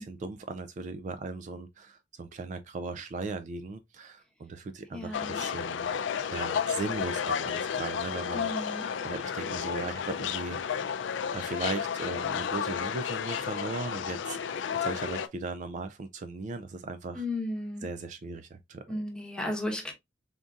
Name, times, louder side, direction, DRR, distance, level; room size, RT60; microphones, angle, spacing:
voice 1, 0.0-5.9 6.3-10.6 11.3-17.3 17.8-19.0, right 3 dB, 40° right, 0.3 m, -38 dB
voice 2, 4.9-5.4 8.3-8.9 17.1-17.9 18.9-19.9, left 1 dB, 5° left, 0.9 m, -34 dB
sound 1, 5.1-15.3, left 7 dB, 85° left, 0.4 m, -32 dB
3.8 x 3.7 x 2.3 m
head